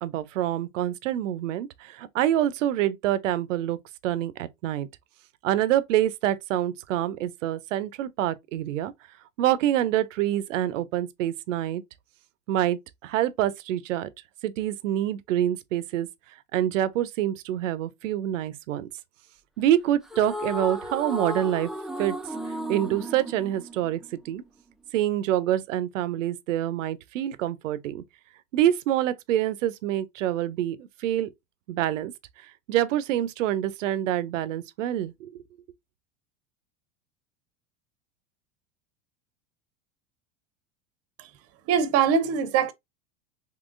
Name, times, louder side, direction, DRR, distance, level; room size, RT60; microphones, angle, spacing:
voice 1, 0.0-3.8 4.0-4.9 5.4-8.9 9.4-11.8 12.5-14.1 14.4-16.1 16.5-18.9 19.6-21.7 22.0-22.1 22.7-24.0 24.3-24.4 24.9-28.0 28.5-31.3 31.7-32.1 32.7-35.3, right 12 dB, 85° right, 0.6 m, -26 dB
sound 1, 20.0-24.5, equal, ahead, 0.3 m, -34 dB
voice 2, 41.7-42.7, right 7 dB, 40° right, 0.6 m, -23 dB
3.7 x 2.9 x 2.4 m
hypercardioid pair, 100°, 37 cm